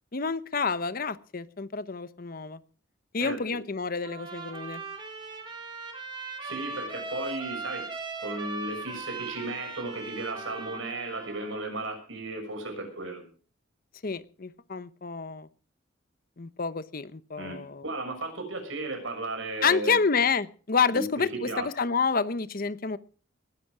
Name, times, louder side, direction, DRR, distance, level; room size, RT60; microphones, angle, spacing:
voice 1, 0.1-2.6 3.1-4.8 14.0-15.5 16.4-17.8 19.6-23.0, left 5 dB, 50° left, 15 dB, 0.8 m, -28 dB
Trumpet, 4.0-11.6, right 3 dB, 25° right, 3.9 m, -39 dB
voice 2, 6.4-7.8 8.2-13.2 17.4-20.0 20.9-21.0 21.3-21.7, right 2 dB, 90° right, 5 dB, 6.2 m, -35 dB
20.0 x 11.0 x 4.9 m, 0.41 s
head